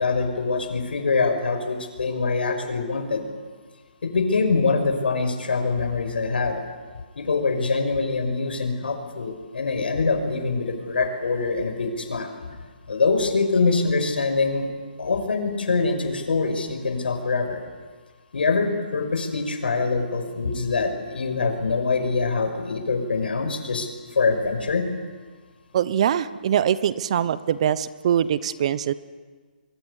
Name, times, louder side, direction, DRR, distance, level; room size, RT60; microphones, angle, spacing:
voice 1, 0.0-3.2 4.0-6.6 7.2-12.3 12.9-14.7 15.0-17.6 18.3-24.8, left 4 dB, 85° left, 6 dB, 5.7 m, -24 dB
voice 2, 25.7-28.9, right 9 dB, 40° right, 17 dB, 0.9 m, -23 dB
25.0 x 23.5 x 8.4 m, 1.4 s
hypercardioid pair, 165°, 5 cm